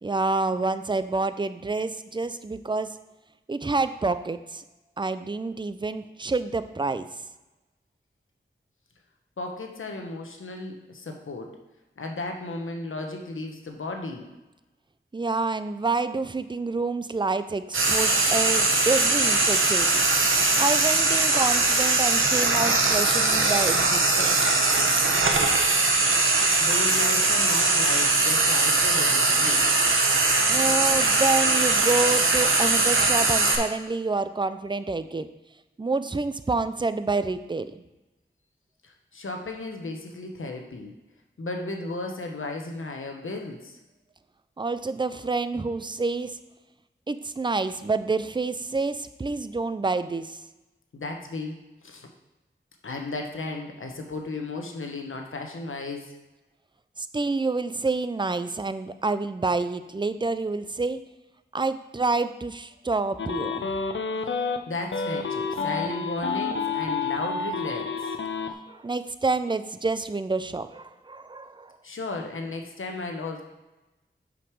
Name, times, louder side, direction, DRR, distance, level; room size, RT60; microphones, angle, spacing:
voice 1, 0.0-3.0 3.5-4.6 5.0-7.1 15.1-20.0 20.6-24.4 30.5-35.3 35.8-37.8 44.6-46.4 47.1-50.4 57.0-61.0 61.5-63.7 65.3-65.4 68.7-71.8, right 3 dB, 25° right, 12 dB, 0.4 m, -28 dB
voice 2, 9.4-11.6 12.0-14.3 26.6-29.7 38.8-40.9 41.4-43.8 50.9-52.1 52.8-56.2 64.7-67.9 71.8-73.4, left 2 dB, 85° left, 3 dB, 0.9 m, -34 dB
Frying (food), 17.7-33.6, right 3 dB, 85° right, 0.8 m, -21 dB
sound 1, 63.2-64.6 64.9-68.5, left 5 dB, 70° left, 0.6 m, -29 dB
6.0 x 5.2 x 4.7 m, 1.0 s
wide cardioid pair, 45°, 20 cm